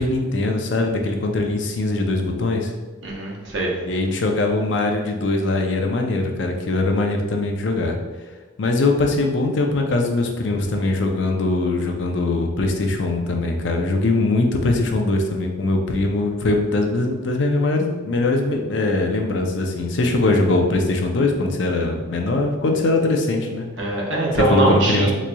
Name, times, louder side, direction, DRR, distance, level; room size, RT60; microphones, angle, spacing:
voice 1, 0.0-2.7 3.9-8.0 8.6-23.7 24.5-25.1, left 2 dB, 70° left, 3 dB, 0.5 m, -21 dB
voice 2, 3.0-3.7 23.8-25.1, right 2 dB, 75° right, -3 dB, 0.9 m, -22 dB
3.8 x 3.1 x 2.2 m, 1.3 s
head